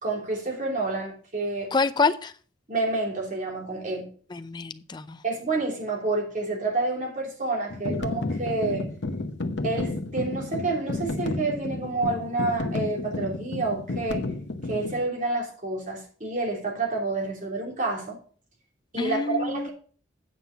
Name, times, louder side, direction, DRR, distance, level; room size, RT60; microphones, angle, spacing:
voice 1, 0.0-1.7 2.7-4.1 5.2-8.9 9.6-14.2 14.6-18.2 18.9-19.7, right 3 dB, 40° right, 3.0 m, -29 dB
voice 2, 1.7-2.3 4.3-5.2 19.0-19.7, left 4 dB, 25° left, 0.5 m, -26 dB
sound 1, 7.7-15.0, left 2 dB, 65° left, 0.9 m, -32 dB
8.8 x 5.8 x 5.6 m
head